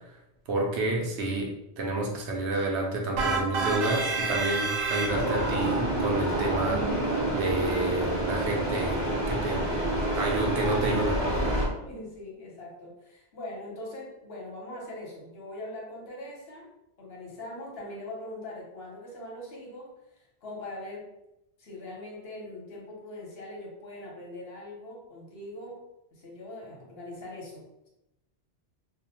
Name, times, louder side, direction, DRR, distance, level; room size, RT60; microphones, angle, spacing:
voice 1, 0.5-7.1 7.3-9.7 10.1-11.2, right 2 dB, 90° right, 1 dB, 0.9 m, -29 dB
sound 1, 3.2-5.6, right 4 dB, 65° right, 0.7 m, -29 dB
sound 2, 5.1-11.7, right 1 dB, 40° right, 1.2 m, -28 dB
voice 2, 11.8-16.7 17.0-21.1 21.6-25.8 26.1-27.9, left 1 dB, 65° left, -2 dB, 1.0 m, -42 dB
2.4 x 2.0 x 2.7 m, 0.89 s
omnidirectional pair, 1.1 m